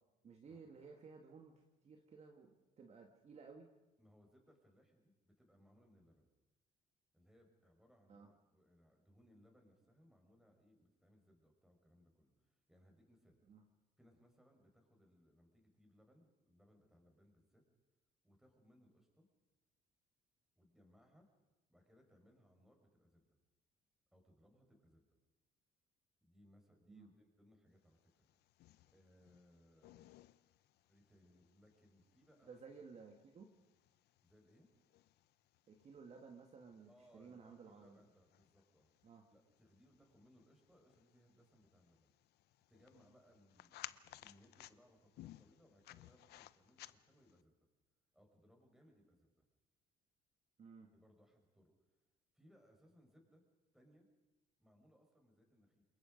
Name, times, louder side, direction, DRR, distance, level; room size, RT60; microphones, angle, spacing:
voice 1, 0.2-3.7 8.1-8.3 13.5-13.6 26.9-27.1 32.5-33.5 35.7-38.0 39.0-39.3 50.6-50.9, right 5 dB, 40° right, 3 dB, 2.0 m, -57 dB
voice 2, 4.0-6.3 7.1-13.4 14.0-17.6 18.2-19.3 20.6-21.3 21.7-23.4 24.1-25.1 26.2-28.2 28.9-30.1 30.9-32.5 34.2-34.7 36.9-38.9 39.3-42.1 42.7-47.5 48.1-49.4 50.9-51.7 52.3-53.4 53.7-54.1 54.6-55.9, equal, ahead, 2 dB, 5.3 m, -69 dB
sound 1, 28.0-47.4, left 15 dB, 75° left, 0.7 m, -60 dB
27.5 x 22.0 x 5.3 m, 1.0 s
cardioid pair, 110°, 17 cm